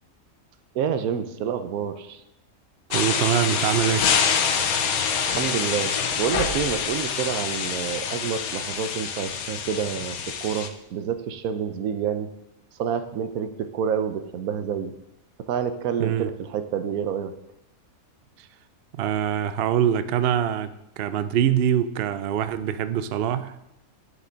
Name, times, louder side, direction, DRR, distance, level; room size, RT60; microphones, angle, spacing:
voice 1, 0.7-2.2 5.2-12.3 12.8-14.9 15.5-17.3, right 8 dB, 85° right, 10 dB, 1.2 m, -28 dB
sound 1, 2.9-10.7, left 7 dB, 80° left, 1.2 m, -26 dB
voice 2, 2.9-4.1 16.0-16.3 18.4-18.5 18.9-23.6, right 9 dB, 65° right, 11 dB, 0.6 m, -24 dB
11.5 x 5.4 x 3.9 m, 0.85 s
omnidirectional pair, 1.5 m